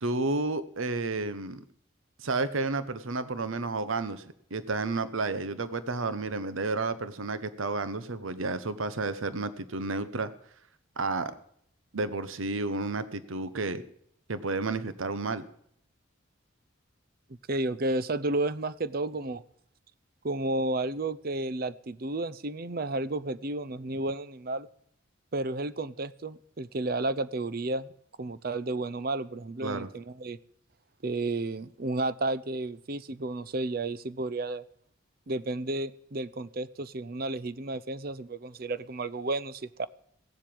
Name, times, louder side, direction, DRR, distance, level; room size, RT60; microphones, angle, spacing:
voice 1, 0.0-1.6 2.2-4.2 4.5-10.3 11.0-11.3 11.9-13.8 14.3-15.4 29.6-29.9, right 3 dB, 75° right, 14 dB, 0.9 m, -31 dB
voice 2, 17.5-19.4 20.2-24.7 25.3-27.9 28.2-30.4 31.0-34.6 35.3-39.9, right 2 dB, 45° right, 16 dB, 0.6 m, -32 dB
16.5 x 7.7 x 8.7 m, 0.67 s
head